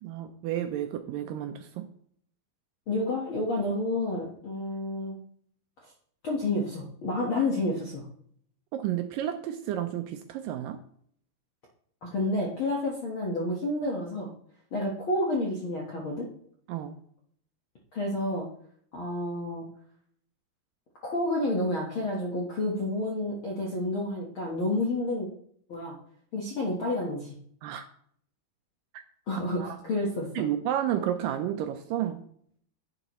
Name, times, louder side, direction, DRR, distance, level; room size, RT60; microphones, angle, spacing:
voice 1, 0.0-1.9 8.7-10.8 16.7-17.0 27.6-27.9 29.6-29.7 30.4-32.2, right 11 dB, 80° right, 7 dB, 2.1 m, -31 dB
voice 2, 2.9-5.2 6.2-8.0 12.0-14.3 14.7-16.3 17.9-18.5 18.9-19.6 21.0-25.3 25.7-25.9 26.3-27.4 29.3-30.3, left 2 dB, 60° left, -3 dB, 1.3 m, -29 dB
10.5 x 7.9 x 3.0 m, 0.63 s
omnidirectional pair, 4.4 m